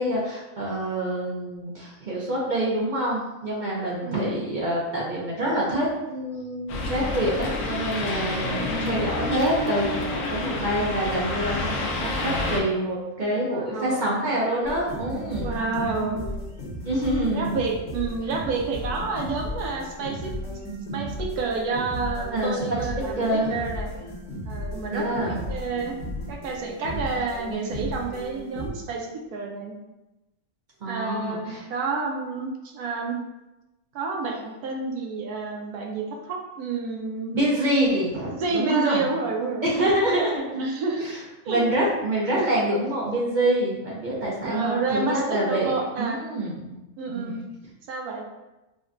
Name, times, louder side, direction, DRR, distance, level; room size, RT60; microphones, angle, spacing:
voice 1, 0.0-15.6 16.8-17.6 22.3-22.8 23.2-23.5 24.9-25.4 30.8-31.7 37.3-39.1 39.6-40.6 41.0-41.2 41.5-46.8 47.1-47.4, right 1 dB, 50° right, -4 dB, 0.5 m, -26 dB
voice 2, 4.0-4.4 8.6-8.9 13.5-14.2 15.4-16.2 17.3-20.3 20.9-23.9 24.5-26.0 26.3-29.7 30.8-33.2 33.9-37.4 38.4-39.7 40.6-41.1 41.4-41.6 44.5-46.3 47.0-47.4 47.9-48.2, right 4 dB, 85° right, 1 dB, 1.1 m, -29 dB
sound 1, 6.7-12.6, left 2 dB, 80° left, 1.1 m, -29 dB
sound 2, 14.6-28.7, equal, 60° left, 1.1 m, -34 dB
5.0 x 2.2 x 2.5 m, 1.0 s
omnidirectional pair, 1.6 m